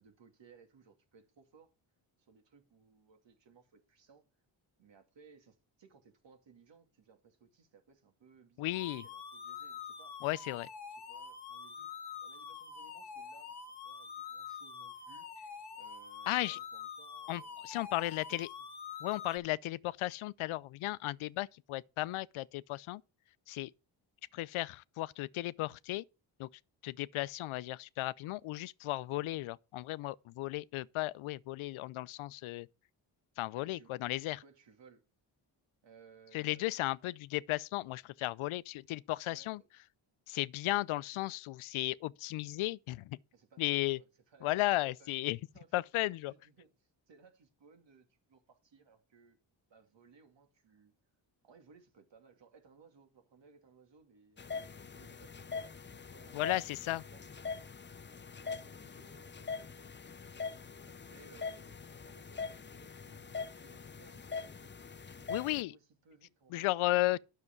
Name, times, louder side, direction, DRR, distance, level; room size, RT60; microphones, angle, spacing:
voice 1, 0.0-1.7 2.2-4.2 4.8-10.3 10.9-11.9 12.2-18.7 33.6-34.0 34.3-35.0 35.8-36.9 39.3-39.7 43.3-45.2 45.5-49.4 49.7-50.9 51.4-54.4 54.8-56.4 56.9-57.3 58.4-60.0 60.8-63.3 63.6-67.2, right 5 dB, 65° right, 2.6 m, -62 dB
voice 2, 8.6-9.0 10.2-10.7 16.3-16.6 17.3-18.5 19.0-23.0 23.5-23.7 24.3-26.0 26.4-26.5 26.8-32.7 33.4-34.4 36.3-39.6 40.3-43.2 43.6-44.0 44.4-45.4 45.7-46.3 56.3-57.0 65.3-65.7 66.5-67.2, left 18 dB, 80° left, 0.6 m, -35 dB
sound 1, 8.7-19.4, left 6 dB, 55° left, 1.7 m, -46 dB
sound 2, 54.4-65.6, left 5 dB, 25° left, 0.7 m, -43 dB
9.7 x 6.7 x 5.9 m
cardioid pair, 55°, 48 cm